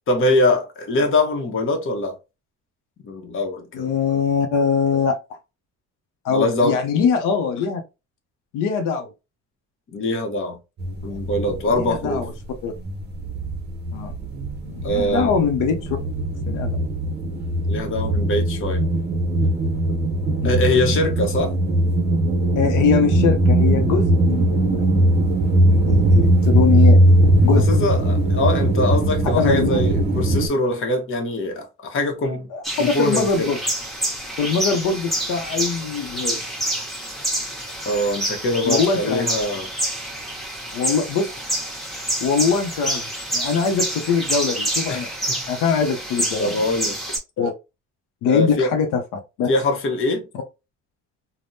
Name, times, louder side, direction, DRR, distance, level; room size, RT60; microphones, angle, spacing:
voice 1, 0.1-2.2 3.0-3.9 6.3-6.8 9.9-10.6 11.0-12.2 14.8-15.3 17.7-18.8 20.4-21.5 27.5-32.5 32.8-33.5 37.8-39.7 44.9-45.4 46.4-47.0 48.3-48.7 49.5-50.3, left 2 dB, 45° left, 0.9 m, -23 dB
voice 2, 3.7-5.2 6.2-7.8 8.5-9.1 11.1-11.2 11.7-12.3 12.6-12.7 13.9-14.1 14.6-16.0 16.5-16.8 20.4-20.7 22.5-24.9 25.7-27.0 27.4-27.6 29.4-29.8 32.5-33.6 34.4-36.4 38.6-39.3 40.7-41.3 42.2-43.0 43.3-45.1 45.5-46.7 47.4-47.5 48.2-49.5, left 6 dB, 85° left, 0.6 m, -22 dB
sound 1, 10.8-12.4 12.7-30.5, right 1 dB, 35° right, 0.6 m, -19 dB
sound 2, 32.6-47.2, right 1 dB, ahead, 0.9 m, -28 dB
3.4 x 2.1 x 2.6 m
cardioid pair, 130°, 30 cm